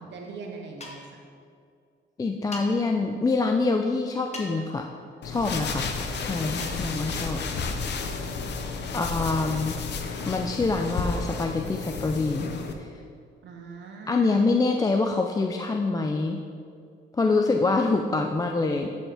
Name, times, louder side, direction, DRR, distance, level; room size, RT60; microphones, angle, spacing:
voice 1, 0.0-1.2 8.2-8.6 13.4-14.3, right 4 dB, 65° right, 1 dB, 0.8 m, -42 dB
sound 1, 0.8-1.2 2.5-2.7 4.3-4.7 6.6-6.8, left 2 dB, 35° left, 1.1 m, -39 dB
voice 2, 2.2-4.9 5.2-5.9 6.2-7.4 8.9-9.8 10.2-12.5 12.8-12.9 14.1-16.4 17.1-18.9, left 3 dB, 20° left, 3 dB, 0.4 m, -25 dB
sound 2, 5.2-12.7, left 4 dB, 60° left, 0.7 m, -32 dB
11.5 x 4.4 x 3.4 m, 2.3 s
cardioid pair, 90°, 20 cm